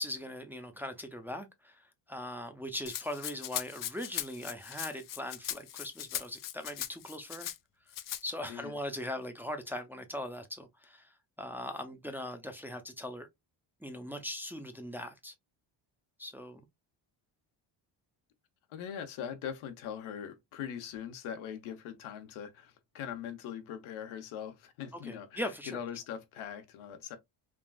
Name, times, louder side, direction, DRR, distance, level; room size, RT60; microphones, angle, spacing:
voice 1, 0.0-7.5 8.2-13.3 13.8-15.3 16.2-16.6 25.0-25.7, left 1 dB, 5° right, 0.5 m, -40 dB
Rattle (instrument), 2.9-7.6 7.9-8.2, left 12 dB, 45° left, 0.4 m, -39 dB
voice 2, 18.7-27.2, left 8 dB, 80° left, 0.9 m, -41 dB
3.6 x 2.4 x 2.3 m
cardioid pair, 85°, 48 cm